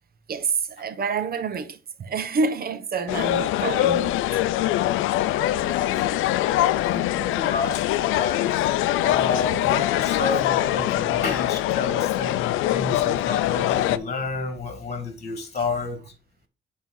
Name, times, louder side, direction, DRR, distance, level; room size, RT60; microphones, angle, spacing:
voice 1, 0.3-4.3 15.6-15.7, right 4 dB, 50° right, 0.9 m, -28 dB
sound 1, 3.1-14.0, left 14 dB, 90° left, 0.4 m, -23 dB
voice 2, 5.2-16.1, left 4 dB, 35° left, 1.9 m, -31 dB
8.9 x 3.7 x 3.8 m
cardioid pair, 90°, 20 cm